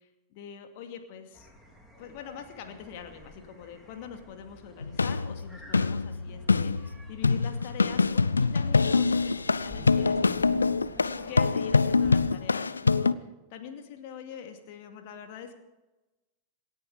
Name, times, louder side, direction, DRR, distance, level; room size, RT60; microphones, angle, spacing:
voice 1, 0.0-1.5 2.0-10.4 11.0-15.6, left 7 dB, 50° left, 5 dB, 2.4 m, -44 dB
sound 1, 1.3-12.2, equal, ahead, 4.2 m, -49 dB
sound 2, 4.8-13.1, left 4 dB, 75° left, 0.5 m, -25 dB
27.0 x 9.8 x 5.0 m, 1.1 s
figure-of-eight pair, 90°, 0 cm